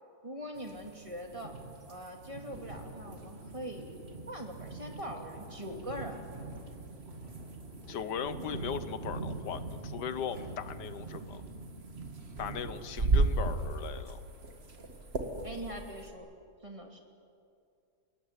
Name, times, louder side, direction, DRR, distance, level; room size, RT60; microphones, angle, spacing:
voice 1, 0.2-1.5 1.9-4.0 4.3-6.2 12.4-12.5 15.4-16.3 16.6-17.0, equal, 20° right, 2 dB, 2.6 m, -42 dB
sound 1, 0.6-16.1, right 3 dB, 35° right, 2.2 m, -37 dB
sound 2, 2.5-11.4, right 1 dB, 85° right, 5.4 m, -54 dB
voice 2, 7.9-11.4 12.4-14.2, left 8 dB, 80° left, 12 dB, 1.5 m, -38 dB
30.0 x 17.5 x 9.7 m, 2.4 s
omnidirectional pair, 1.8 m